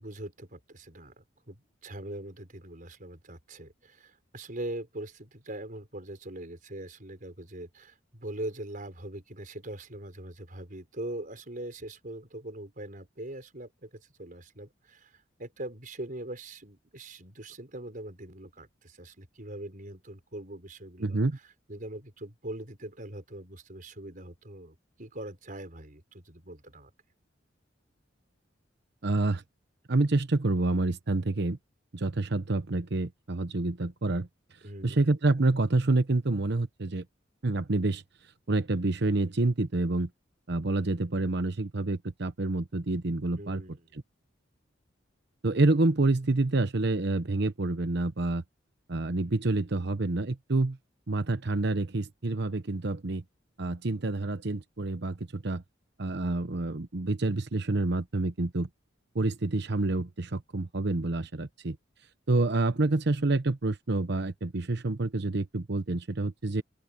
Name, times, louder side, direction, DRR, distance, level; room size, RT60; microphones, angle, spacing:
voice 1, 0.0-21.2 21.7-26.9 34.6-35.0 43.4-43.9, right 1 dB, 45° right, 5.0 m, -42 dB
voice 2, 21.0-21.4 29.0-29.4 29.9-31.6 31.9-34.3 34.8-37.0 37.4-38.0 38.5-40.1 40.5-43.6 45.4-48.4 48.9-50.8 51.1-53.2 53.6-55.6 56.0-58.7 59.1-61.8 62.3-66.6, right 2 dB, 65° right, 1.0 m, -28 dB
open air
head